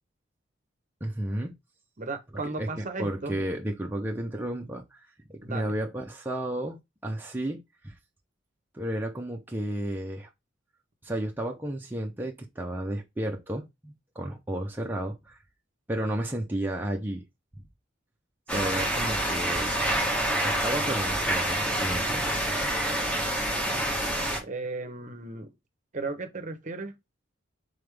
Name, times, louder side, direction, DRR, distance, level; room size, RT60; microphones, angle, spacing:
voice 1, 1.0-1.5 2.6-5.0 5.3-6.8 7.0-7.6 7.8-7.9 8.7-10.3 11.0-15.4 15.9-17.2 18.5-20.1 20.4-22.4, right 1 dB, 10° right, 0.6 m, -32 dB
voice 2, 2.0-3.4 5.4-5.7 24.4-25.5 25.9-26.9, right 3 dB, 40° right, 0.8 m, -35 dB
sound 1, 18.5-24.4, right 1 dB, 5° left, 1.0 m, -27 dB
3.8 x 3.5 x 3.3 m
head